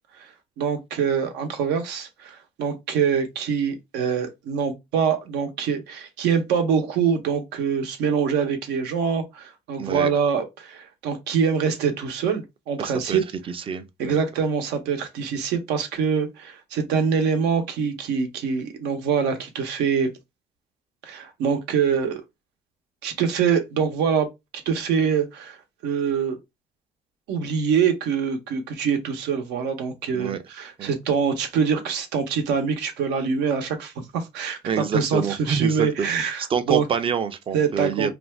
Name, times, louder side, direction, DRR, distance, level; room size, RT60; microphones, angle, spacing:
voice 1, 0.6-13.2 14.0-20.1 21.0-22.2 23.0-24.3 24.7-25.6 25.8-26.4 27.3-36.8 37.5-38.1, right 6 dB, 85° right, 0.8 m, -24 dB
voice 2, 9.8-10.1 12.8-13.2 13.5-14.2 30.1-30.4 30.8-30.9 34.6-38.1, right 6 dB, 30° right, 0.4 m, -27 dB
2.5 x 2.3 x 3.2 m
cardioid pair, 110°, 17 cm